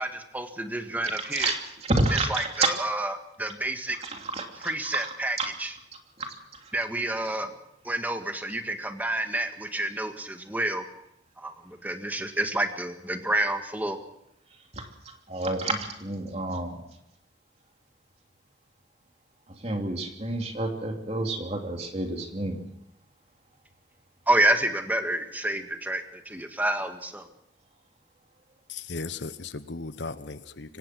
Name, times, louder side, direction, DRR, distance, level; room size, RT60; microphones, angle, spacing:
voice 1, 0.0-1.5 2.1-4.0 4.6-5.7 6.7-7.5 7.8-10.9 11.4-14.0 24.3-27.3, right 1 dB, 10° right, 6 dB, 1.8 m, -29 dB
voice 2, 1.0-2.7 4.0-5.1 5.4-5.5 6.2-6.7 7.2-7.3 14.7-14.9 15.3-16.9 19.5-22.6, right 2 dB, 35° right, 3 dB, 3.1 m, -30 dB
voice 3, 28.7-30.8, left 3 dB, 80° left, 13 dB, 1.1 m, -36 dB
24.5 x 18.0 x 6.3 m, 0.79 s
head